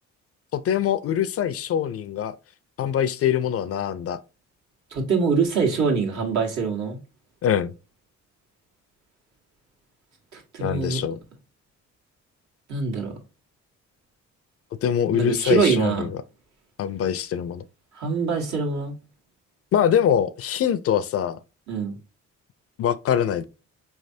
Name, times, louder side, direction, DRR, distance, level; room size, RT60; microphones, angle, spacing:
voice 1, 0.5-2.4 2.8-4.2 7.4-7.7 10.6-11.2 14.8-16.2 16.8-17.6 19.7-21.4 22.8-23.4, left 9 dB, 50° left, 0.4 m, -23 dB
voice 2, 4.9-7.0 10.3-11.0 12.7-13.1 15.1-16.0 17.9-19.0 21.7-21.9, right 5 dB, 70° right, 1.6 m, -24 dB
4.6 x 3.2 x 2.7 m
cardioid pair, 90°, 30 cm